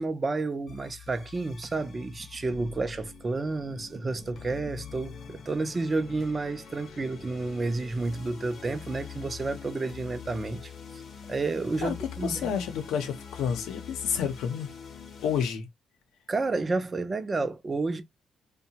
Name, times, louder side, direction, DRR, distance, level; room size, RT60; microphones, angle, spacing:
voice 1, 0.0-10.7 11.3-12.6 16.3-18.0, right 3 dB, 30° right, 0.5 m, -30 dB
sound 1, 0.7-15.4, left 6 dB, 60° left, 0.8 m, -44 dB
voice 2, 12.2-14.7 15.2-15.7, left 7 dB, 90° left, 0.7 m, -30 dB
2.8 x 2.2 x 2.8 m
cardioid pair, 90°, 0 cm